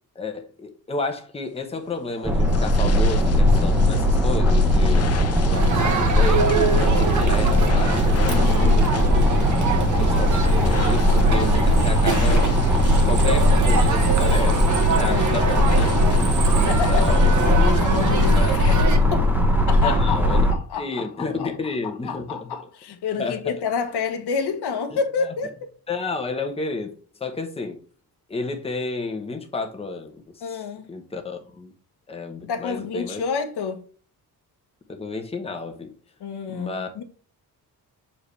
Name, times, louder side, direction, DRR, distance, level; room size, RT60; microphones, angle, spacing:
voice 1, 0.1-5.2 5.5-6.5 6.9-9.5 10.0-12.5 13.0-16.3 16.7-17.3 18.3-18.5 19.8-20.5 20.7-22.5 23.2-23.5 24.9-25.3 25.9-26.9 27.2-27.8 28.3-30.6 30.9-31.7 32.1-33.2 34.9-35.9 36.5-36.9, left 3 dB, 15° left, 1.0 m, -31 dB
sound 1, 1.9-18.8, left 5 dB, 40° left, 0.7 m, -32 dB
sound 2, 2.2-20.5, equal, 5° right, 1.1 m, -19 dB
Crowd, 5.5-19.0, right 4 dB, 50° right, 1.3 m, -26 dB
voice 2, 8.3-8.8 15.0-15.4 16.7-17.2 17.6-18.8 19.1-19.2 19.7-21.5 21.8-25.7 30.4-30.9 32.4-33.8 36.2-37.0, left 6 dB, 85° left, 1.3 m, -29 dB
6.8 x 4.8 x 3.3 m
wide cardioid pair, 160°, 38 cm